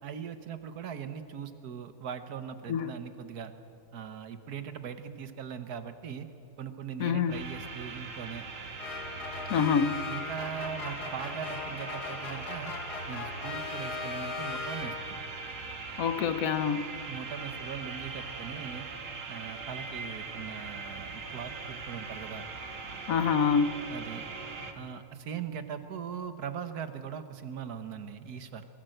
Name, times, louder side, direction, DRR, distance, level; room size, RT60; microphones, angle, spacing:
voice 1, 0.0-3.5 3.9-6.3 6.6-8.5 10.1-12.7 13.1-15.2 17.1-18.9 19.3-22.5 23.9-24.2 24.7-28.7, right 7 dB, 75° right, 10 dB, 1.7 m, -40 dB
voice 2, 7.0-7.4 9.5-10.1 16.0-16.8 23.1-23.8, left 6 dB, 65° left, 11 dB, 1.2 m, -26 dB
sound 1, 7.3-24.7, right 4 dB, 55° right, 1.7 m, -41 dB
sound 2, 8.8-15.3, left 5 dB, 85° left, 2.2 m, -39 dB
23.0 x 15.5 x 7.9 m, 2.6 s
omnidirectional pair, 1.7 m